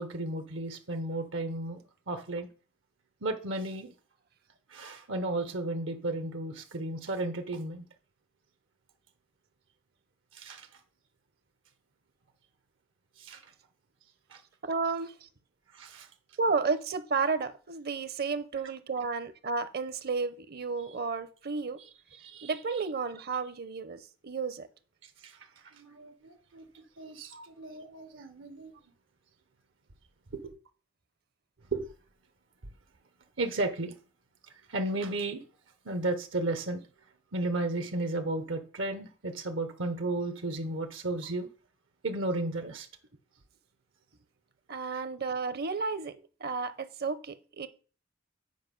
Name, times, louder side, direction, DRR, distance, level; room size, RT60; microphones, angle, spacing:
voice 1, 0.0-2.5 3.2-3.9 4.7-7.9 10.3-10.7 13.2-13.5 14.3-14.4 15.7-16.1 21.8-21.9 22.2-22.5 25.2-25.4 25.7-28.7 30.3-30.5 31.7-31.9 33.4-34.0 34.7-35.4 35.8-36.8 37.3-41.5 42.0-42.9, right 2 dB, 80° right, 1.0 m, -34 dB
voice 2, 14.6-15.3 16.4-21.8 22.4-24.7 27.3-27.5 44.7-47.7, right 4 dB, 55° right, 0.7 m, -32 dB
8.0 x 4.9 x 5.3 m
head